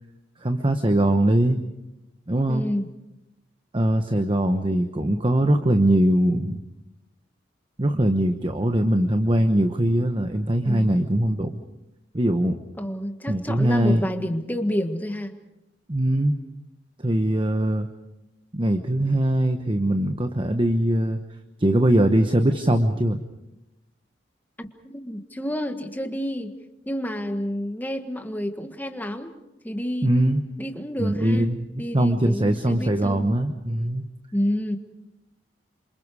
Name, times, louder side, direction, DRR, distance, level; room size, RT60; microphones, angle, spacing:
voice 1, 0.4-1.6 2.3-2.7 3.7-6.6 7.8-11.6 12.1-12.6 13.3-14.1 15.9-16.3 17.0-17.9 18.5-21.2 21.6-23.2 30.0-30.4 31.0-34.0, right 1 dB, 30° right, 7 dB, 1.0 m, -21 dB
voice 2, 2.5-2.9 10.6-10.9 12.8-15.4 24.6-26.5 26.9-29.3 29.6-30.1 30.6-31.5 31.8-33.3 34.3-34.8, equal, 10° left, 6 dB, 1.7 m, -29 dB
29.0 x 26.0 x 4.9 m, 0.94 s
head